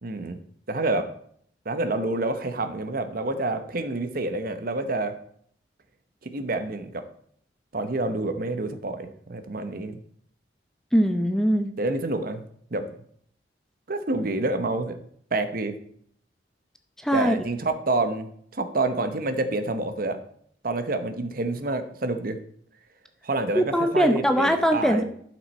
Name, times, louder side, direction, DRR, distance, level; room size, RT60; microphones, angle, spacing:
voice 1, 0.0-0.4 0.7-1.1 1.6-5.2 6.2-7.1 7.7-10.0 11.8-12.4 12.7-12.9 13.9-15.0 15.3-15.8 17.1-20.2 20.6-22.4 23.2-25.0, right 2 dB, 55° right, 9 dB, 0.9 m, -28 dB
voice 2, 10.9-11.7 17.0-17.4 23.5-25.0, equal, 5° left, 6 dB, 0.6 m, -21 dB
11.5 x 6.2 x 4.2 m, 0.63 s
head